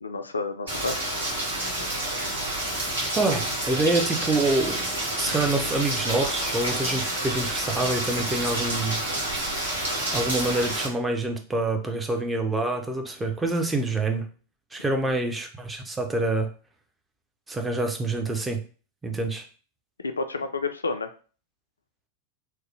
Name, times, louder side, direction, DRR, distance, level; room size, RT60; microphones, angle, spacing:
voice 1, 0.0-1.1 5.3-5.4 15.0-15.1 20.0-21.1, left 3 dB, 75° left, 8 dB, 0.3 m, -30 dB
Rain, 0.7-10.9, right 1 dB, 70° right, 1.2 m, -29 dB
voice 2, 3.1-4.9 5.2-9.0 10.1-14.2 14.7-16.5 17.5-18.6 19.0-19.4, right 2 dB, 10° right, 4 dB, 0.5 m, -26 dB
3.1 x 2.0 x 3.2 m, 0.38 s
figure-of-eight pair, 90°, 0 cm